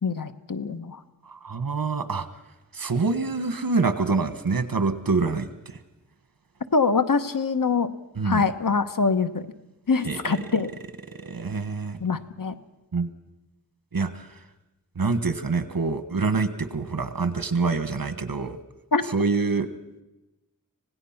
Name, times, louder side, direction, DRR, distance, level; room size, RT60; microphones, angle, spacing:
voice 1, 0.0-1.0 6.7-7.9 8.2-9.5 9.9-10.7 12.0-12.5 18.9-19.0, left 4 dB, 70° left, 10 dB, 1.2 m, -24 dB
voice 2, 1.3-2.3 2.7-5.8 8.2-8.4 10.0-10.4 11.1-12.0 12.9-13.1 13.9-14.4 14.9-18.6 19.1-19.7, right 4 dB, 80° right, 11 dB, 1.4 m, -26 dB
25.5 x 18.0 x 5.9 m, 0.97 s
wide cardioid pair, 55°, 34 cm